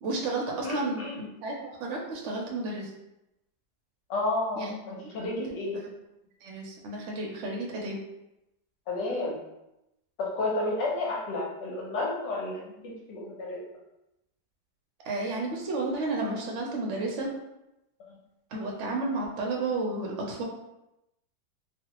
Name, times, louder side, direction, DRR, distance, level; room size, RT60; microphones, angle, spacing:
voice 1, 0.0-1.5 1.8-2.9 4.6-4.7 5.3-5.9 6.4-8.0 15.0-17.3 18.5-20.4, right 2 dB, 60° right, -1 dB, 0.8 m, -32 dB
voice 2, 0.6-1.1 4.1-5.7 8.9-9.4 10.2-13.6 18.1-18.2, left 2 dB, 85° left, -3 dB, 1.5 m, -31 dB
3.1 x 2.4 x 2.9 m, 0.90 s
omnidirectional pair, 1.9 m